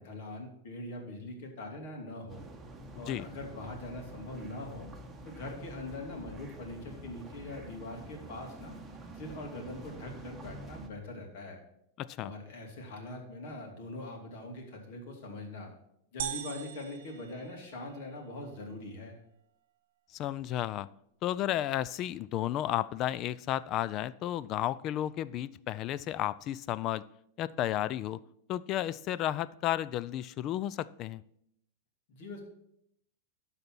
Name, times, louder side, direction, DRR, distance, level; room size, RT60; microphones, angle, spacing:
voice 1, 0.0-2.5 3.0-4.9 5.2-8.8 9.1-11.6 12.2-15.7 16.1-19.2 32.1-32.4, left 2 dB, 60° left, 2 dB, 2.7 m, -42 dB
sound 1, 2.3-10.9, right 2 dB, 10° right, 1.2 m, -47 dB
voice 2, 12.0-12.3 20.1-20.9 21.2-27.0 27.4-28.2 28.5-31.2, left 12 dB, 35° left, 19 dB, 0.4 m, -33 dB
sound 2, 16.2-18.1, right 11 dB, 75° right, 0.8 m, -41 dB
12.0 x 4.2 x 6.0 m, 0.76 s
supercardioid pair, 135°, 0 cm